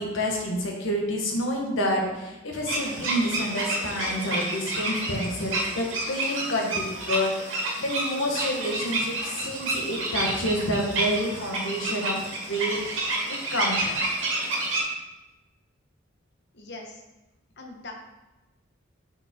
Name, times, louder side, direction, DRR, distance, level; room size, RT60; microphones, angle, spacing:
voice 1, 0.0-12.8 13.3-14.0, equal, 90° left, 0 dB, 1.4 m, -28 dB
sound 1, 2.7-14.8, right 2 dB, 80° right, 2.0 m, -29 dB
voice 2, 16.5-17.0 17.6-17.9, left 3 dB, 60° left, 1 dB, 1.3 m, -41 dB
6.0 x 5.3 x 4.4 m, 1.0 s
head